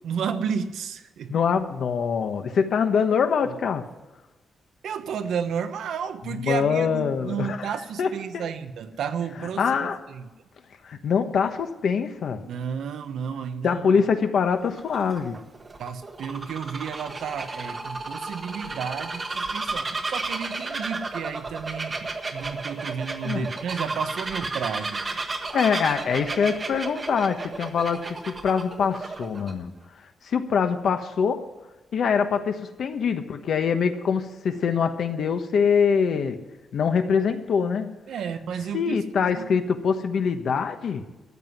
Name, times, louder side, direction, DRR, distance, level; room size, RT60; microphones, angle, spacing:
voice 1, 0.0-1.3 3.4-3.6 4.8-10.3 12.4-14.0 15.8-25.0 38.1-39.6, right 7 dB, 85° right, 9 dB, 1.1 m, -32 dB
voice 2, 1.3-3.8 6.3-7.7 8.0-8.5 9.6-10.0 10.8-12.4 13.6-15.4 23.2-23.5 25.5-29.7 30.2-31.4 31.9-36.4 36.7-37.9 38.7-41.1, left 6 dB, 65° left, 7 dB, 1.2 m, -24 dB
Bird vocalization bird call bird song, 14.5-29.5, right 3 dB, 25° right, 1.2 m, -33 dB
13.5 x 7.9 x 9.7 m, 1.1 s
wide cardioid pair, 160°, 0 cm